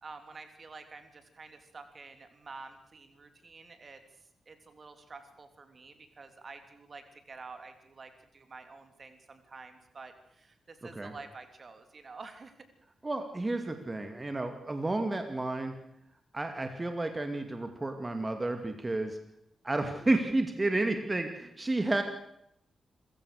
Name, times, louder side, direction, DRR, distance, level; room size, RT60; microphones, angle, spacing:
voice 1, 0.0-4.0 4.5-12.5, right 4 dB, 50° right, 8 dB, 3.2 m, -49 dB
voice 2, 13.0-15.7 16.3-19.2 19.6-22.0, right 2 dB, 30° right, 6 dB, 2.4 m, -31 dB
27.0 x 15.5 x 6.6 m, 0.77 s
cardioid pair, 50°, 0 cm